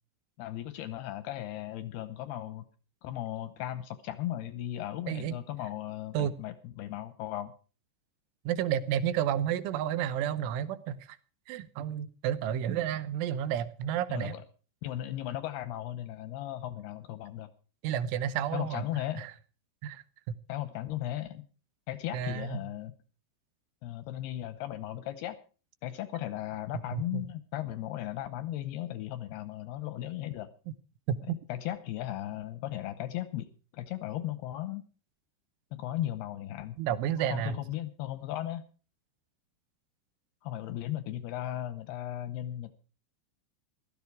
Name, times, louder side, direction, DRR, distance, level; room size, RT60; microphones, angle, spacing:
voice 1, 0.4-2.7 3.0-7.5 14.1-14.4 14.8-17.5 18.5-19.3 20.5-21.4 21.9-23.0 23.8-25.4 25.8-30.5 31.3-34.8 35.7-36.8 37.3-38.6 40.4-42.7, left 13 dB, 75° left, 13 dB, 2.4 m, -36 dB
voice 2, 8.5-11.2 11.5-14.4 17.8-18.8 19.2-19.3 19.8-20.0 22.1-22.6 26.9-27.2 31.1-31.4 36.8-37.6, right 10 dB, 80° right, 15 dB, 3.3 m, -31 dB
15.5 x 13.5 x 4.7 m, 0.37 s
omnidirectional pair, 5.6 m